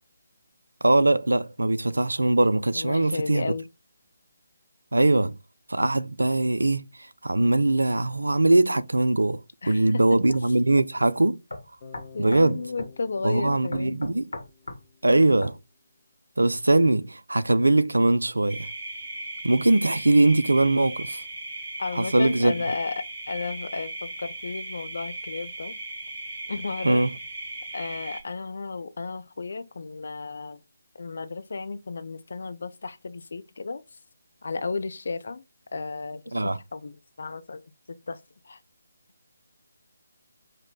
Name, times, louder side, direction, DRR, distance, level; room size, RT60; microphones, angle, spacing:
voice 1, 0.8-3.5 4.9-5.4 5.7-9.4 9.7-11.4 12.2-12.6 13.2-14.3 15.0-15.6 16.4-18.7 19.4-21.2 21.9-22.5 26.8-27.1 36.3-36.6, right 2 dB, 70° right, 0.3 m, -21 dB
voice 2, 2.7-3.7 9.6-10.2 12.1-14.0 21.8-25.7 26.5-27.1 27.7-30.6 30.9-33.8 34.4-35.4 35.7-38.2 38.4-38.6, left 4 dB, 55° left, 0.4 m, -33 dB
sound 1, 10.3-10.5 11.0-11.1 11.5-12.5 12.8-13.0 13.7-14.8 15.4-15.6, left 2 dB, 70° left, 1.0 m, -38 dB
Bass guitar, 11.8-15.8, left 5 dB, 35° left, 1.0 m, -51 dB
sound 2, 18.5-28.2, right 2 dB, 30° right, 2.9 m, -37 dB
5.1 x 2.1 x 3.6 m
figure-of-eight pair, 150°, 0 cm